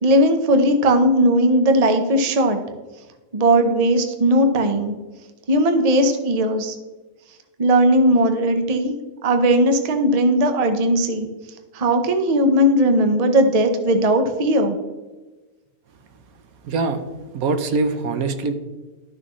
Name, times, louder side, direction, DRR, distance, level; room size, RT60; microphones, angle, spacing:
voice 1, 0.0-2.6 3.3-5.0 5.5-6.8 7.6-8.9 9.2-11.3 11.7-14.8, right 1 dB, 30° right, 6 dB, 0.7 m, -18 dB
voice 2, 16.6-17.0 17.3-18.5, right 3 dB, 75° right, 8 dB, 1.2 m, -23 dB
12.5 x 6.2 x 3.1 m, 1.2 s
omnidirectional pair, 1.6 m